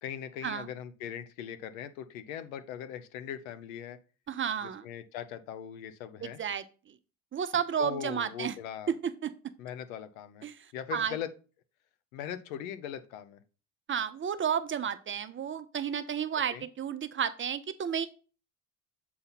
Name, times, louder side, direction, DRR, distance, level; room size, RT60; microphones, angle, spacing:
voice 1, 0.0-4.0 4.6-6.4 7.8-8.9 9.6-10.4 10.7-11.3 12.1-13.4 16.5-16.6, left 9 dB, 75° left, 11 dB, 0.8 m, -40 dB
voice 2, 4.3-4.8 6.2-7.0 7.3-8.5 8.9-9.3 10.4-11.2 13.9-18.1, right 8 dB, 30° right, 11 dB, 0.7 m, -32 dB
7.6 x 4.0 x 4.1 m, 0.35 s
hypercardioid pair, 65°, 42 cm